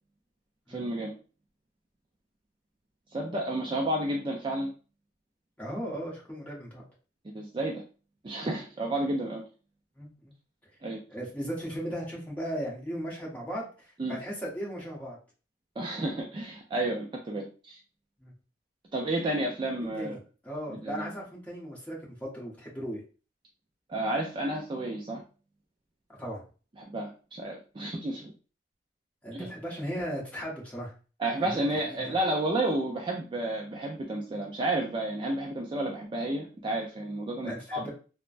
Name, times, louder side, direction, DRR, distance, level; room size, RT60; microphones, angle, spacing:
voice 1, 0.7-1.1 3.1-4.7 7.3-7.8 8.2-9.4 10.8-11.0 14.0-14.2 15.8-17.8 18.9-20.2 20.8-21.1 23.9-25.2 26.8-28.3 29.3-29.5 31.2-37.9, right 1 dB, 25° right, 0 dB, 0.4 m, -31 dB
voice 2, 5.6-6.8 10.0-10.3 11.1-15.2 18.2-18.3 19.8-23.0 26.2-26.4 29.2-30.9 31.4-31.6 32.0-32.1 37.4-37.9, equal, 10° left, -5 dB, 1.0 m, -37 dB
3.2 x 2.1 x 2.4 m, 0.35 s
head